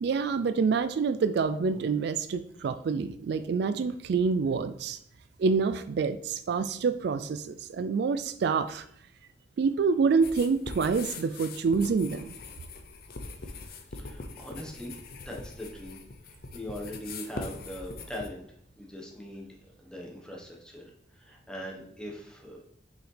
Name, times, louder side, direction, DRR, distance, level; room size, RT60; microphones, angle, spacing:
voice 1, 0.0-5.0 5.4-8.8 9.6-12.4, right 5 dB, 65° right, 12 dB, 0.3 m, -27 dB
sound 1, 10.2-18.3, left 3 dB, 55° left, 0.7 m, -42 dB
voice 2, 14.0-14.9 15.2-16.0 16.2-18.4 18.8-22.7, equal, 5° left, -1 dB, 1.1 m, -41 dB
6.3 x 5.0 x 3.3 m, 0.67 s
head